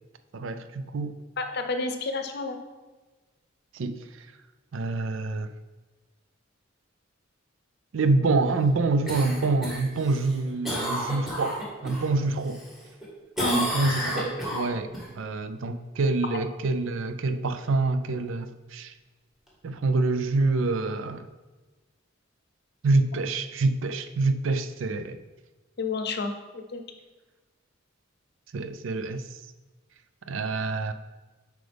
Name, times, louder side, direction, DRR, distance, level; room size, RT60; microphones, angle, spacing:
voice 1, 0.3-1.1 3.7-4.3 4.7-5.5 7.9-12.6 13.5-18.9 19.6-21.3 22.8-25.2 28.5-29.2 30.3-30.9, right 3 dB, 75° right, 10 dB, 0.5 m, -26 dB
voice 2, 1.4-2.6 13.4-13.6 25.8-26.8, left 3 dB, 55° left, 7 dB, 0.6 m, -30 dB
Cough, 9.1-12.1 12.5-13.1 13.4-15.0 19.5-19.6, equal, ahead, 1.6 m, -31 dB
7.7 x 4.8 x 3.4 m, 1.2 s
head